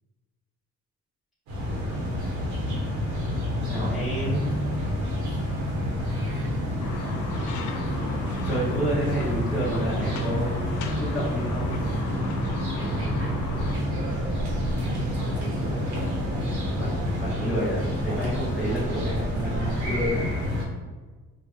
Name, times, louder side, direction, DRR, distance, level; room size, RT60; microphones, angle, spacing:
sound 1, 1.5-20.6, equal, 75° right, 1.1 m, -28 dB
voice 1, 3.6-4.5 5.2-5.4 8.4-11.8 15.5-15.6 16.7-20.3, equal, ahead, -11 dB, 1.0 m, -29 dB
voice 2, 6.0-6.7 12.8-15.7, right 1 dB, 45° right, -3 dB, 0.8 m, -41 dB
sound 2, 6.8-13.8, left 4 dB, 85° left, 0.4 m, -37 dB
3.6 x 2.2 x 3.7 m, 1.3 s
cardioid pair, 110°, 30 cm